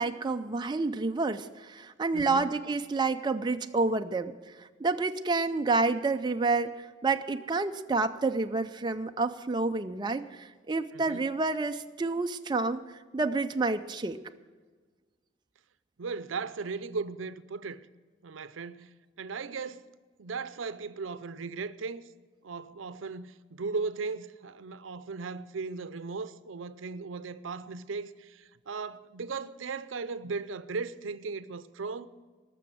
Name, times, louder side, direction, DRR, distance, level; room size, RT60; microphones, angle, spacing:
voice 1, 0.0-4.3 4.6-12.8 13.1-14.2, right 3 dB, 25° right, 0.4 m, -29 dB
voice 2, 2.1-2.5 10.9-11.2 16.0-17.8 18.2-19.9 20.2-22.1 22.4-32.1, right 4 dB, 85° right, 0.6 m, -37 dB
19.0 x 7.0 x 7.6 m
head